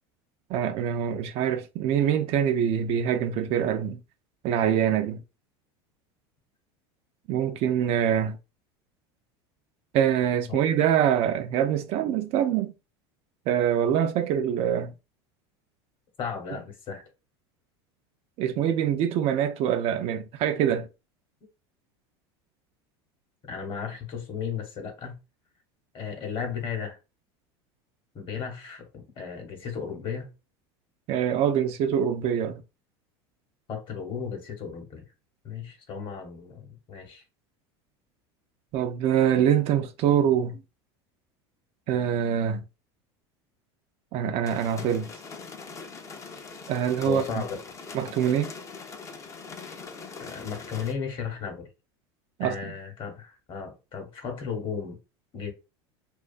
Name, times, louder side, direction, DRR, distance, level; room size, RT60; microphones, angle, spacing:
voice 1, 0.5-4.0 4.4-5.2 7.3-8.4 9.9-12.7 13.5-14.9 18.4-20.9 31.1-32.6 38.7-40.6 41.9-42.6 44.1-45.1 46.7-47.4 47.9-48.5 52.4-52.6, right 9 dB, 50° right, 0.4 m, -24 dB
voice 2, 16.2-17.0 23.5-25.2 25.9-27.0 28.1-30.3 33.7-35.0 35.4-37.2 47.0-47.6 50.2-51.7 52.4-55.0 55.3-55.5, left 6 dB, 40° left, 0.9 m, -35 dB
sound 1, 44.5-50.9, left 4 dB, 20° left, 0.4 m, -42 dB
2.4 x 2.3 x 2.4 m
supercardioid pair, 105°, 14 cm